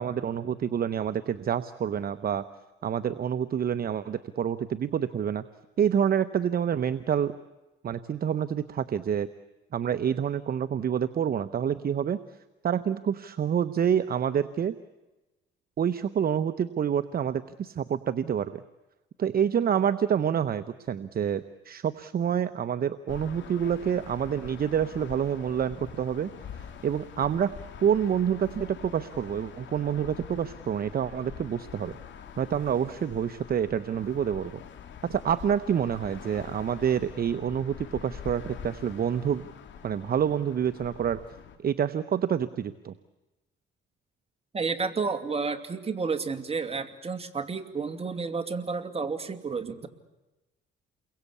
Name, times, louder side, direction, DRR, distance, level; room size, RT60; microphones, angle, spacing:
voice 1, 0.0-2.4 2.8-5.5 5.8-7.3 7.8-9.3 9.7-12.2 12.6-14.7 15.8-18.6 19.2-27.5 27.8-32.0 32.4-34.6 35.0-39.5 39.8-41.2 41.6-42.9, right 8 dB, 50° right, 12 dB, 0.9 m, -27 dB
sound 1, 23.1-41.6, left 8 dB, 70° left, 3.4 m, -45 dB
voice 2, 44.5-49.9, right 4 dB, 30° right, 7 dB, 2.5 m, -31 dB
29.0 x 22.5 x 8.5 m, 1.1 s
cardioid pair, 90°, 20 cm